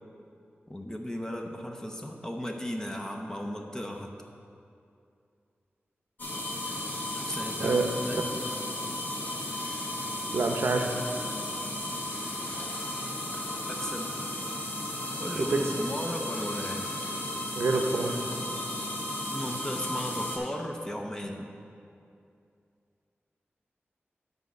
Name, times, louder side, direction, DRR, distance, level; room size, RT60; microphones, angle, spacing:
voice 1, 0.7-4.1 7.1-8.2 13.7-14.2 15.2-16.9 19.3-21.5, equal, 15° left, 2 dB, 0.6 m, -36 dB
sound 1, 6.2-20.4, left 1 dB, 50° left, 1.3 m, -34 dB
voice 2, 7.6-8.0 10.3-10.9 15.4-15.7 17.5-18.2, right 3 dB, 75° right, 4 dB, 0.7 m, -27 dB
8.2 x 4.1 x 6.5 m, 2.5 s
wide cardioid pair, 100°, 4 cm